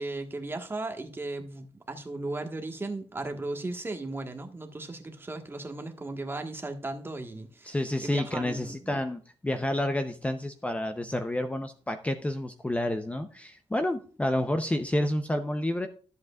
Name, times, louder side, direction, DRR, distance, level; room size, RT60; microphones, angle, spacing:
voice 1, 0.0-7.8 8.0-8.8, right 2 dB, 20° right, 1.4 m, -36 dB
voice 2, 7.6-15.9, left 1 dB, 10° left, 0.7 m, -29 dB
13.5 x 7.7 x 2.4 m
wide cardioid pair, 135°, 11 cm